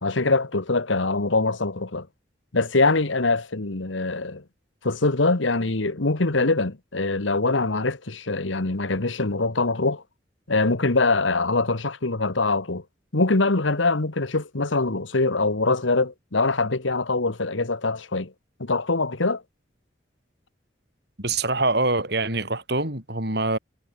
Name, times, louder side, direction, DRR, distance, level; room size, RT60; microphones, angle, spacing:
voice 1, 0.0-2.1 2.5-4.4 4.8-10.0 10.5-12.8 13.1-18.3 18.6-19.4, left 3 dB, 80° left, 1.6 m, -23 dB
voice 2, 21.2-23.6, right 2 dB, 60° right, 7.9 m, -24 dB
head